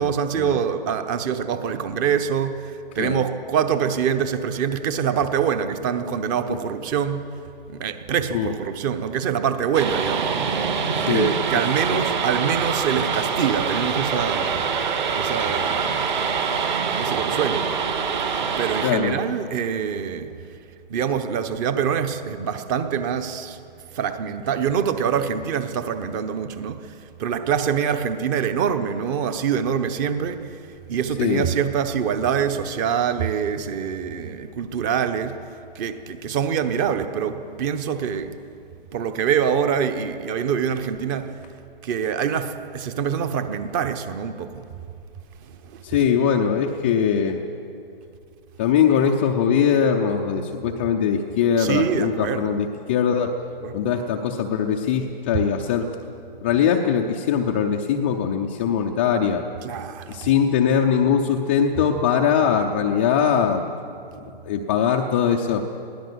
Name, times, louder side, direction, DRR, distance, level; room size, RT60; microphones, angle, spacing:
voice 1, 0.0-7.3 7.7-10.5 11.1-14.6 15.2-16.1 16.7-17.7 18.6-20.3 20.9-23.6 23.9-30.6 30.9-35.4 35.7-38.4 38.9-41.4 41.8-44.7 45.4-45.8 51.6-52.6 53.6-53.8 59.6-60.2, right 7 dB, 20° right, 0.9 m, -25 dB
sound 1, 9.7-18.9, right 6 dB, 50° right, 3.0 m, -25 dB
voice 2, 11.0-11.3 11.9-12.0 18.8-19.2 31.2-31.5 45.8-47.4 48.6-53.3 53.7-55.9 56.4-59.5 60.1-63.6 64.4-65.7, left 7 dB, 15° left, 0.4 m, -21 dB
22.0 x 16.5 x 8.0 m
hypercardioid pair, 145°, 29 cm